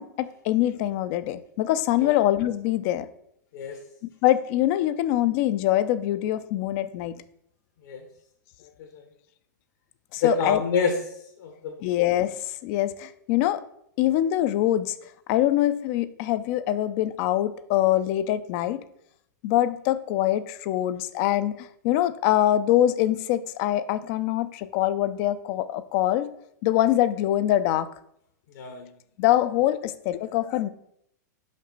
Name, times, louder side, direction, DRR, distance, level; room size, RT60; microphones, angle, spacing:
voice 1, 0.0-3.1 4.2-7.1 10.1-10.6 11.8-13.6 14.0-15.0 15.3-18.8 19.4-26.3 26.6-27.9 29.2-30.7, left 13 dB, 45° left, 13 dB, 0.5 m, -24 dB
voice 2, 10.2-10.9 11.4-11.9 28.5-28.9, left 5 dB, 65° left, 3 dB, 1.1 m, -27 dB
5.9 x 5.2 x 4.0 m, 0.73 s
hypercardioid pair, 105°, 10 cm